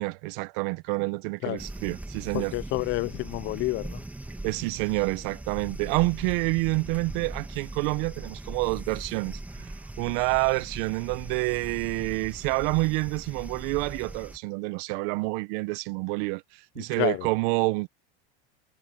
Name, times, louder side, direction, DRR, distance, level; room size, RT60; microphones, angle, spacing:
voice 1, 0.0-2.5 4.4-17.9, right 27 dB, 60° right, 0.8 m, -28 dB
sound 1, 1.6-14.4, right 1 dB, 5° right, 2.1 m, -40 dB
voice 2, 2.3-4.0 16.8-17.3, left 20 dB, 40° left, 0.5 m, -29 dB
supercardioid pair, 125°, 31 cm